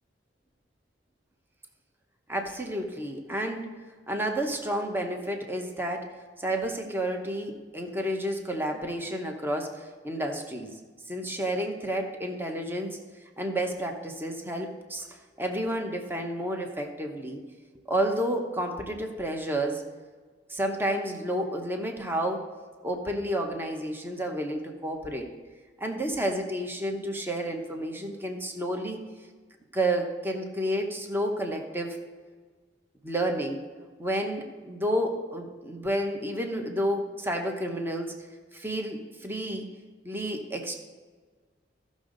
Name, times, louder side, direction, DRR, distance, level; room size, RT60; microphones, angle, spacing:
voice 1, 2.3-3.7 4.1-6.1 6.4-10.7 11.1-13.0 13.4-17.4 17.9-19.8 20.5-22.5 22.8-25.3 25.8-29.0 29.7-32.0 33.0-33.6 34.0-38.2 38.5-39.7 40.0-40.8, right 1 dB, 10° right, 3 dB, 0.9 m, -30 dB
15.0 x 6.3 x 3.9 m, 1.4 s
head